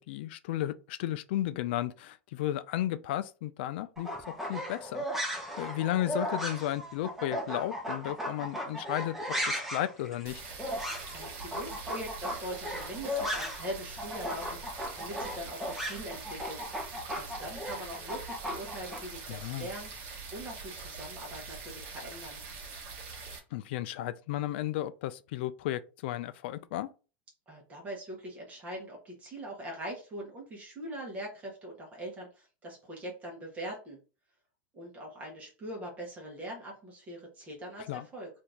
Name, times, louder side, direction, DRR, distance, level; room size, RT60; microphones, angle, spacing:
voice 1, 0.0-4.1 4.5-5.1 5.6-9.2 9.4-10.4 19.3-19.7 23.5-26.9 37.9-38.1, left 13 dB, 65° left, 0.4 m, -34 dB
sound 1, 4.0-13.7 14.0-19.0, equal, 5° right, 0.8 m, -36 dB
sound 2, 10.3-23.4, right 4 dB, 45° right, 1.0 m, -44 dB
voice 2, 11.1-16.6 17.1-19.9 20.3-22.4 27.5-34.0 34.7-38.3, right 1 dB, 20° right, 1.1 m, -42 dB
2.8 x 2.6 x 3.5 m
supercardioid pair, 135°, 6 cm